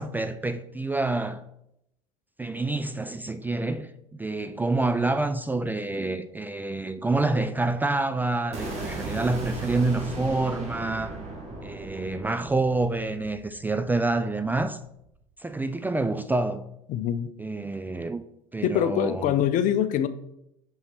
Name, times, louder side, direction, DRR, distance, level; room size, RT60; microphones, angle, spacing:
voice 1, 0.0-1.4 2.4-11.2 11.6-14.8 15.4-16.7 17.4-18.2 18.5-19.4, right 2 dB, 10° right, 0.4 m, -27 dB
sound 1, 8.5-14.6, right 2 dB, 35° right, 2.4 m, -37 dB
voice 2, 16.9-17.3 18.6-20.1, left 10 dB, 45° left, 0.6 m, -24 dB
5.6 x 5.6 x 4.3 m
figure-of-eight pair, 65°, 19 cm